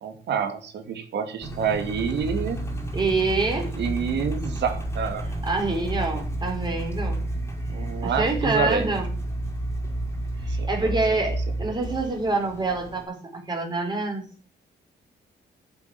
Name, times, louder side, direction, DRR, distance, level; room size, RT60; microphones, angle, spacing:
voice 1, 0.0-2.6 3.7-5.3 7.7-8.9 10.5-11.0, right 6 dB, 75° right, 8 dB, 2.4 m, -28 dB
Engine, 1.4-13.0, right 1 dB, 15° left, 3.8 m, -31 dB
voice 2, 2.9-3.7 5.5-7.2 8.0-9.1 10.4-14.2, right 3 dB, 25° right, 2 dB, 4.4 m, -26 dB
8.9 x 7.6 x 8.3 m, 0.39 s
cardioid pair, 145°, 18 cm